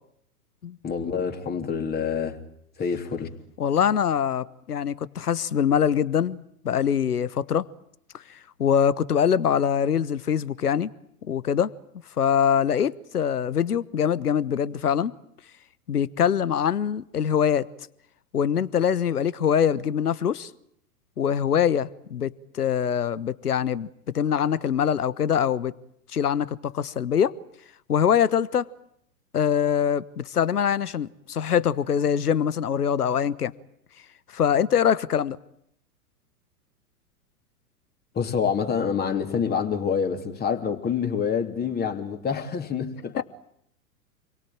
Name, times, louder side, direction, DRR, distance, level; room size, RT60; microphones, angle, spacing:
voice 1, 0.8-2.4 2.8-3.3 38.1-43.2, left 6 dB, 20° left, 3.0 m, -27 dB
voice 2, 3.6-6.4 6.6-7.6 8.1-10.9 11.2-11.7 12.2-15.1 15.9-17.7 18.3-20.5 21.2-23.9 24.1-25.7 26.1-27.4 27.9-28.7 29.3-33.5 34.3-35.4 43.2-43.3, left 8 dB, 75° left, 1.2 m, -23 dB
28.5 x 23.0 x 8.9 m
figure-of-eight pair, 105°, 46 cm